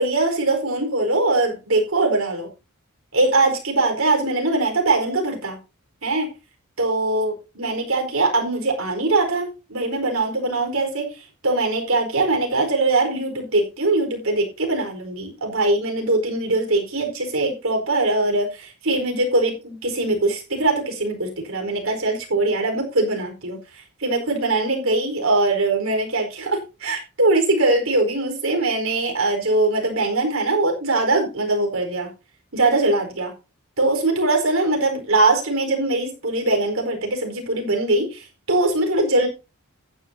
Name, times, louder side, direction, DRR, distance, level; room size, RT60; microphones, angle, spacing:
voice 1, 0.0-2.5 3.1-5.6 6.0-6.3 6.8-32.1 32.5-33.3 33.8-39.3, right 2 dB, 65° right, 3 dB, 4.6 m, -22 dB
15.0 x 10.0 x 2.8 m, 0.29 s
head